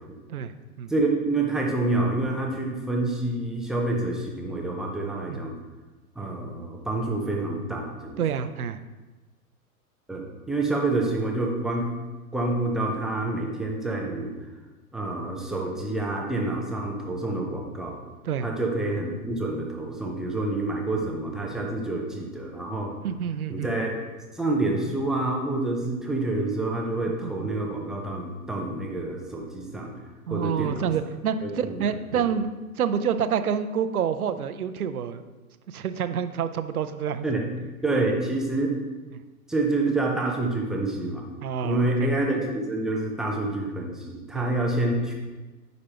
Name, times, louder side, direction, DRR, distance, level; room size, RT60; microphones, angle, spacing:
voice 1, 0.9-5.6 6.2-8.2 10.1-11.9 12.3-14.3 14.9-18.0 18.4-22.9 23.5-23.9 24.3-29.9 30.3-30.9 31.4-32.3 37.2-37.5 37.8-38.7 39.5-41.2 41.6-45.1, right 2 dB, ahead, -1 dB, 0.5 m, -27 dB
voice 2, 8.2-8.8 18.2-18.5 23.0-23.7 27.2-27.5 30.3-32.5 32.8-35.2 35.7-37.3 37.9-38.0 41.4-42.1 44.3-44.6, right 7 dB, 75° right, 11 dB, 0.6 m, -28 dB
9.4 x 5.2 x 2.9 m, 1.2 s
figure-of-eight pair, 110°, 44 cm